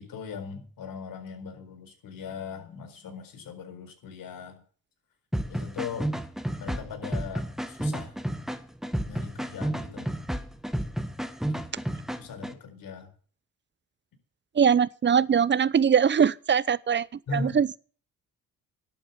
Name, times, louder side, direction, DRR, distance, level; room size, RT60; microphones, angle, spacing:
voice 1, 0.0-4.6 5.5-6.1 6.6-8.2 9.0-10.1 11.5-11.6 12.2-13.1 17.3-17.6, left 4 dB, 70° left, 4.5 m, -39 dB
sound 1, 5.3-12.5, right 1 dB, ahead, 1.6 m, -32 dB
voice 2, 14.5-17.1 17.3-17.8, right 7 dB, 30° right, 0.7 m, -22 dB
11.5 x 8.7 x 8.5 m
supercardioid pair, 70°, 35 cm